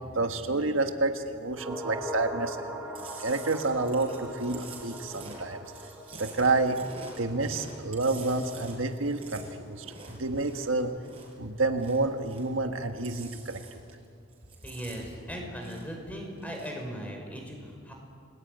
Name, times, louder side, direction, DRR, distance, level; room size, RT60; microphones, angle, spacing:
voice 1, 0.0-2.7 3.2-5.6 6.2-6.8 7.2-10.9 11.4-13.8, right 2 dB, 85° right, 6 dB, 1.7 m, -29 dB
sound 1, 1.5-10.0 10.2-10.3, right 1 dB, 10° right, 3.9 m, -42 dB
Chewing mastication, 2.9-11.4 11.7-12.6 12.9-14.0 14.3-16.0 16.3-16.8, right 3 dB, 25° right, 6.2 m, -47 dB
voice 2, 14.6-17.9, equal, 10° left, 1 dB, 5.4 m, -38 dB
30.0 x 20.5 x 9.4 m, 2.3 s
head